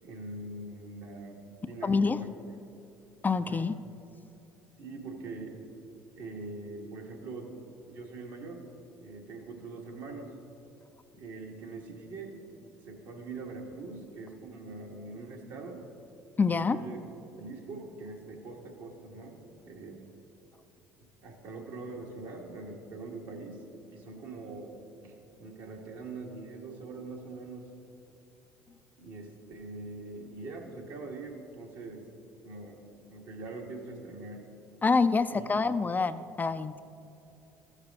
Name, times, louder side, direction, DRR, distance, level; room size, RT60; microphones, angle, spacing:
voice 1, 0.0-2.3 3.4-3.7 4.8-5.6 6.1-8.6 9.0-10.3 11.1-12.4 12.7-15.8 16.4-17.0 17.4-19.4 19.6-20.0 21.2-23.6 23.9-24.8 25.0-25.1 25.4-27.7 29.0-32.0 32.4-32.8 33.1-34.4 35.3-35.5, right 3 dB, 70° right, 0 dB, 1.6 m, -43 dB
voice 2, 1.8-2.2 3.2-3.7 16.4-16.8 34.8-36.8, left 4 dB, 25° left, 12 dB, 0.3 m, -26 dB
14.0 x 6.6 x 3.6 m, 2.8 s
hypercardioid pair, 65°, 8 cm